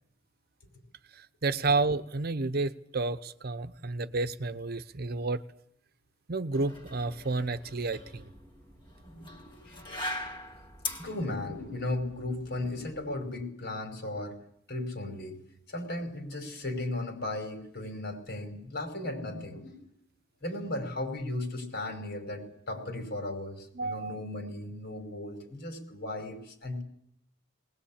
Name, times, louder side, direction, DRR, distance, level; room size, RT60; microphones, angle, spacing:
voice 1, 1.1-5.4 6.3-8.3 23.7-24.2, right 3 dB, 55° right, 12 dB, 0.9 m, -31 dB
sound 1, 6.5-13.4, left 2 dB, 25° left, 2.4 m, -42 dB
voice 2, 9.0-9.8 11.0-14.4 14.7-15.4 15.7-19.9 20.4-26.8, left 2 dB, 60° left, 5 dB, 5.2 m, -36 dB
20.5 x 20.0 x 8.7 m, 0.71 s
head